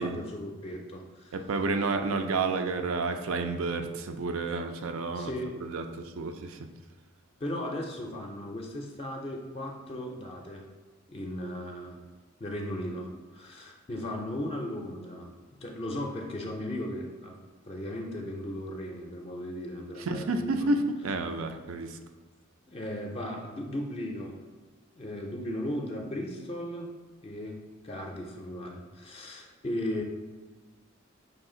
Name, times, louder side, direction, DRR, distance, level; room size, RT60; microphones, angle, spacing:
voice 1, 0.0-1.3 5.1-5.5 7.4-10.6 11.1-12.0 12.4-15.3 15.6-17.4 17.7-20.7 22.7-24.4 24.9-26.9 27.2-30.0, left 1 dB, 30° left, 1 dB, 0.4 m, -36 dB
voice 2, 1.3-5.3 5.6-5.8 6.2-6.6 20.1-22.0, right 3 dB, 85° right, 7 dB, 0.4 m, -30 dB
5.2 x 2.4 x 3.7 m, 1.3 s
head